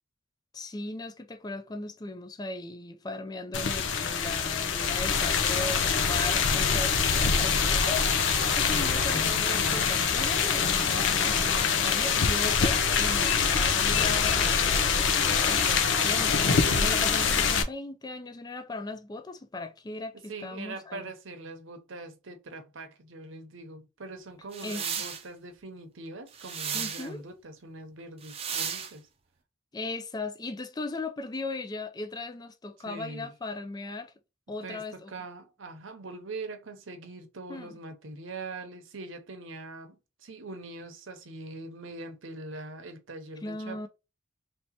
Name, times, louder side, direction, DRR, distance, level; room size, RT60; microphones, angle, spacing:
voice 1, 0.5-21.1 24.6-24.8 26.7-27.2 29.7-34.1 34.5-35.1 37.5-37.8 43.4-43.9, left 2 dB, 20° left, 0.4 m, -38 dB
sound 1, 3.5-17.6, left 6 dB, 65° left, 0.6 m, -25 dB
voice 2, 9.0-9.8 16.6-17.0 20.3-29.1 32.9-33.3 34.6-43.9, right 2 dB, 80° right, 0.9 m, -42 dB
sound 2, 24.5-25.2 26.3-27.1 28.2-28.9, right 7 dB, 30° right, 0.6 m, -34 dB
3.3 x 2.9 x 4.1 m
head